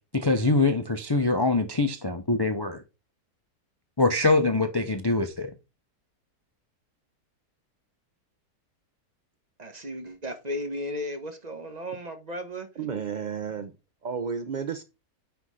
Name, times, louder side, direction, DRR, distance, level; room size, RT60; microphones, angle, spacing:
voice 1, 0.1-2.8 4.0-5.5, left 3 dB, 30° left, 0.4 m, -24 dB
voice 2, 9.6-12.7, equal, 30° right, 1.1 m, -35 dB
voice 3, 12.8-13.7 14.0-14.8, right 6 dB, 75° right, 0.4 m, -32 dB
9.8 x 3.5 x 4.8 m
omnidirectional pair, 1.6 m